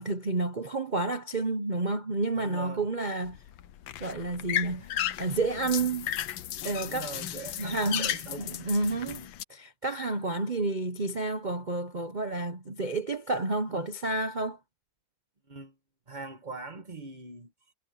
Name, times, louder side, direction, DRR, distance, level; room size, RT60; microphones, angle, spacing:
voice 1, 0.0-3.4 4.0-4.9 5.2-6.1 6.6-7.1 7.6-9.2 9.5-14.6, right 2 dB, 40° right, 0.6 m, -30 dB
voice 2, 2.3-2.9 6.8-9.3 15.5-15.7 16.1-17.5, right 3 dB, 25° right, 1.5 m, -42 dB
sound 1, 3.2-9.4, left 11 dB, 75° left, 1.6 m, -35 dB
omnidirectional pair, 2.2 m